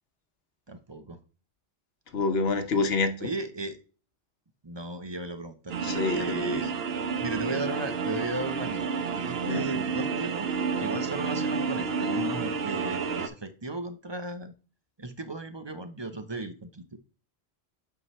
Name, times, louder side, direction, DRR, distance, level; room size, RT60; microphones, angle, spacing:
voice 1, 0.7-1.2 3.2-3.8 4.6-6.7 7.2-10.5 10.8-14.5 15.0-17.0, right 2 dB, 30° right, 0.8 m, -36 dB
voice 2, 2.1-3.3 5.8-6.7 9.4-9.6, left 3 dB, 75° left, 1.1 m, -27 dB
sound 1, 5.7-13.3, right 5 dB, 75° right, 1.1 m, -30 dB
8.3 x 5.6 x 3.2 m
omnidirectional pair, 1.0 m